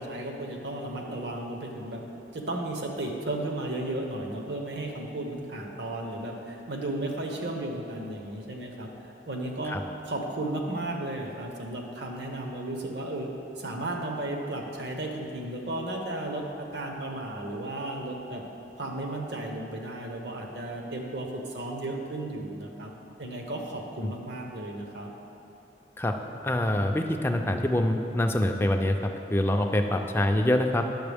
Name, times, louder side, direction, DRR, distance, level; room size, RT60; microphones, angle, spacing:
voice 1, 0.0-2.0 2.3-8.9 9.3-13.3 13.6-18.4 18.8-22.9 23.2-25.1, right 1 dB, 65° right, 1 dB, 1.0 m, -34 dB
voice 2, 26.4-29.0 29.3-30.8, left 1 dB, 15° left, 4 dB, 0.4 m, -25 dB
9.6 x 6.9 x 3.5 m, 2.9 s
head